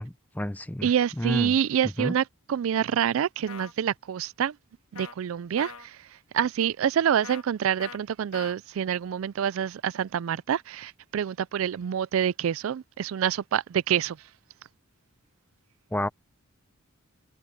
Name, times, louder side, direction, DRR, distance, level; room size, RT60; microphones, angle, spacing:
voice 1, 0.0-0.9 1.2-1.5 2.0-2.1 15.9-16.1, left 1 dB, 5° left, 0.6 m, -30 dB
voice 2, 0.8-4.6 4.9-6.1 6.3-14.2, right 9 dB, 65° right, 0.3 m, -27 dB
sound 1, 3.5-3.7 5.0-5.1 5.6-5.9 7.2-7.4 7.8-8.0 8.3-8.5, left 5 dB, 90° left, 1.5 m, -41 dB
head